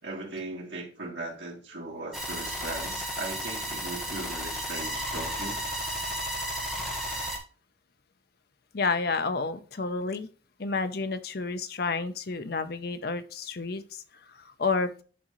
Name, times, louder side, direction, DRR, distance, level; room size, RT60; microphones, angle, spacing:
voice 1, 0.0-5.6, right 2 dB, 80° right, -1 dB, 2.7 m, -38 dB
sound 1, 2.1-7.4, equal, ahead, 1.5 m, -33 dB
voice 2, 8.7-10.3 10.6-15.0, left 4 dB, 60° left, 10 dB, 0.7 m, -30 dB
11.0 x 3.7 x 3.1 m, 0.37 s
head